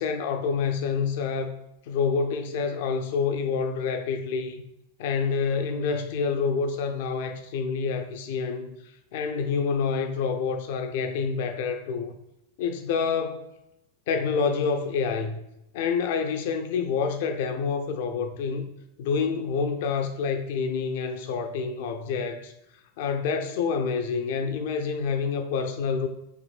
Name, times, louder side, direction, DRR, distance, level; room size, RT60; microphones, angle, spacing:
voice 1, 0.0-1.5 1.9-4.6 5.0-8.7 9.1-12.1 12.6-13.5 14.1-15.4 15.7-18.6 19.0-22.5 23.0-26.1, left 5 dB, 50° left, 6 dB, 0.4 m, -27 dB
6.1 x 3.1 x 2.3 m, 0.85 s
figure-of-eight pair, 90°, 0 cm